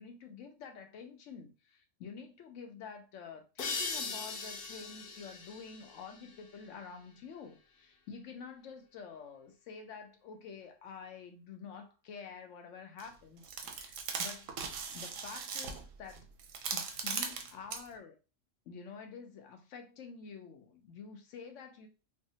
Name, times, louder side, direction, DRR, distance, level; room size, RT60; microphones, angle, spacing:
voice 1, 0.0-14.5 14.9-16.2 16.7-18.2 18.7-21.9, left 6 dB, 85° left, 1.0 m, -48 dB
sound 1, 3.6-7.0, left 4 dB, 60° left, 0.6 m, -40 dB
sound 2, 13.0-13.1 13.4-17.9, right 5 dB, 90° right, 0.9 m, -39 dB
3.4 x 2.0 x 2.7 m
omnidirectional pair, 1.3 m